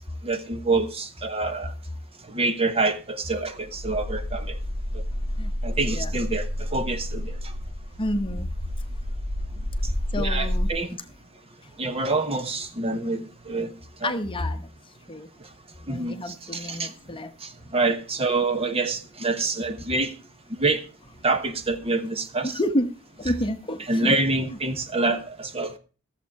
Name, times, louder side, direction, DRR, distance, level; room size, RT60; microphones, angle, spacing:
voice 1, 0.2-1.7 2.3-4.6 5.6-6.4 6.7-7.3 10.2-11.0 11.8-13.7 14.0-14.1 15.9-16.9 17.4-20.1 20.6-20.8 21.2-22.6 23.9-25.8, right 3 dB, 30° right, 1.1 m, -26 dB
sound 1, 3.5-10.7, equal, 65° right, 4.2 m, -30 dB
voice 2, 8.0-8.5 9.6-9.7 10.1-10.7 14.0-14.7 15.1-15.3 15.9-17.3 22.4-24.1, left 1 dB, 25° left, 0.9 m, -29 dB
14.5 x 7.4 x 4.7 m
head